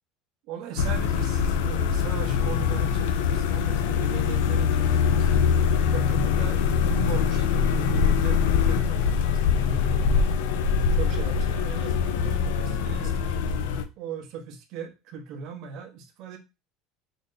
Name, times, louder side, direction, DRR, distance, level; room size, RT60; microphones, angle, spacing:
voice 1, 0.5-10.3 10.9-13.4 14.0-16.4, right 5 dB, 60° right, 0.9 m, -38 dB
sound 1, 0.8-13.8, left 6 dB, 85° left, 0.4 m, -23 dB
3.7 x 2.1 x 3.8 m
supercardioid pair, 130°, 0 cm